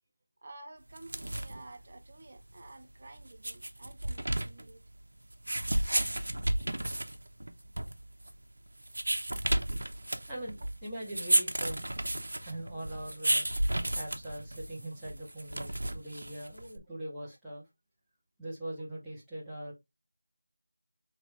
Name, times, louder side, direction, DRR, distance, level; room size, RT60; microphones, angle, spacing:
voice 1, 0.4-4.8, right 2 dB, 30° right, 0.6 m, -51 dB
sound 1, 0.9-16.8, right 1 dB, 70° right, 0.9 m, -33 dB
voice 2, 10.3-11.9 12.4-13.5 13.9-17.6 18.4-19.7, right 1 dB, ahead, 0.9 m, -41 dB
3.8 x 3.2 x 3.4 m
figure-of-eight pair, 175°, 0 cm